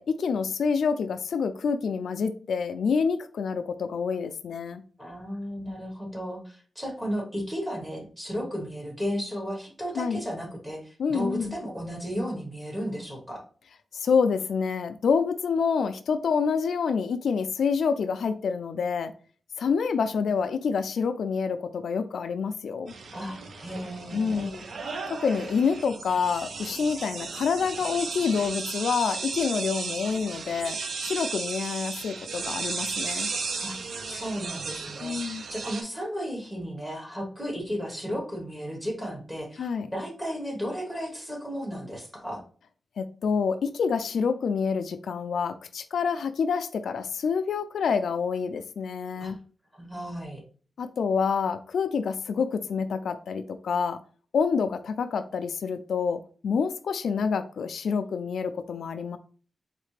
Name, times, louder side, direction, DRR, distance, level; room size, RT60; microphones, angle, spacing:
voice 1, 0.0-4.8 10.0-10.2 11.0-11.6 13.9-19.1 19.6-22.9 24.1-24.6 25.1-33.3 35.0-35.4 39.6-39.9 43.0-49.4 50.8-54.0 54.3-59.2, left 5 dB, 85° left, 9 dB, 0.3 m, -27 dB
voice 2, 5.0-13.4 23.1-24.5 33.6-33.8 34.1-35.2 35.5-42.4 49.2-49.4 49.7-50.4, equal, 5° right, 0 dB, 1.3 m, -34 dB
sound 1, 22.9-35.8, right 4 dB, 65° right, 0.5 m, -35 dB
4.1 x 3.3 x 3.2 m, 0.40 s
wide cardioid pair, 165°, 0 cm